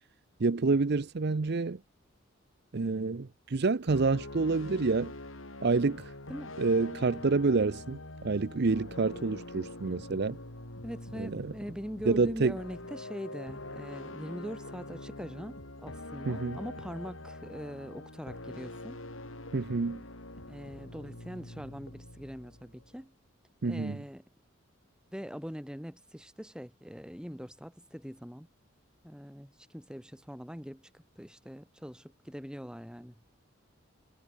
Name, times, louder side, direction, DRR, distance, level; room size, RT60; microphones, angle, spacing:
voice 1, 0.4-1.8 2.7-5.1 5.6-6.1 6.6-10.4 11.2-11.5 12.1-12.6 16.3-16.6 19.5-20.0 23.6-24.0, right 3 dB, 55° right, 0.6 m, -28 dB
sound 1, 3.9-23.0, left 2 dB, 75° left, 6.2 m, -45 dB
voice 2, 10.8-19.0 20.5-23.1 23.6-24.2 25.1-28.5 29.0-33.1, equal, 5° right, 7.7 m, -42 dB
head